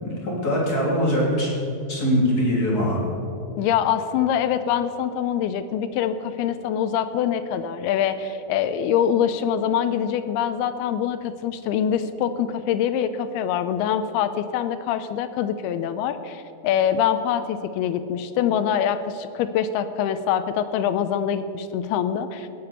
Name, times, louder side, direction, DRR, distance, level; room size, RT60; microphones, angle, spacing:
voice 1, 0.0-1.5 1.9-3.0, equal, 25° left, -4 dB, 3.0 m, -22 dB
voice 2, 3.6-22.5, left 9 dB, 85° left, 11 dB, 2.5 m, -24 dB
17.5 x 6.9 x 7.1 m, 2.6 s
omnidirectional pair, 4.6 m